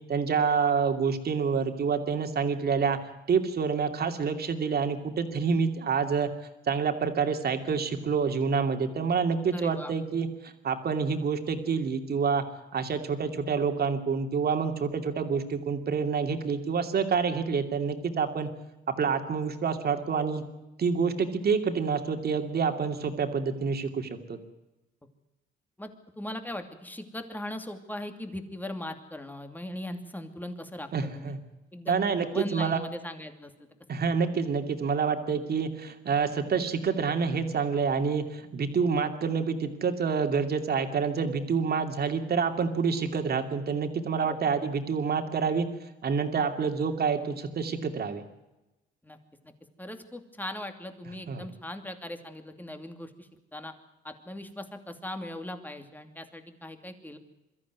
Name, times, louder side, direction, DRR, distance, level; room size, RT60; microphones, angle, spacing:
voice 1, 0.1-3.0 3.3-6.3 6.7-12.4 12.7-18.5 19.0-20.4 20.8-24.4 30.9-31.4 31.9-32.8 33.9-45.7 46.0-48.2 51.3-51.5, right 5 dB, 50° right, 6 dB, 2.7 m, -27 dB
voice 2, 9.5-9.9 25.8-25.9 26.2-31.4 31.7-33.5 44.2-44.4 49.0-49.2 49.4-49.5 49.8-53.7 54.0-57.2, left 1 dB, 10° left, 7 dB, 2.6 m, -39 dB
23.0 x 14.0 x 9.5 m, 1.0 s
cardioid pair, 90°, 20 cm